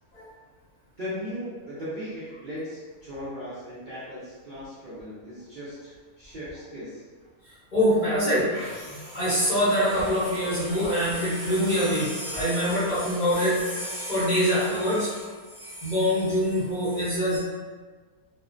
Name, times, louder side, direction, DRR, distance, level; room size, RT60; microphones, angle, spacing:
voice 1, 1.0-7.0, equal, 60° right, -10 dB, 0.5 m, -37 dB
voice 2, 7.7-15.3 15.6-17.4, equal, 40° left, -11 dB, 0.7 m, -25 dB
2.4 x 2.0 x 2.4 m, 1.4 s
omnidirectional pair, 1.5 m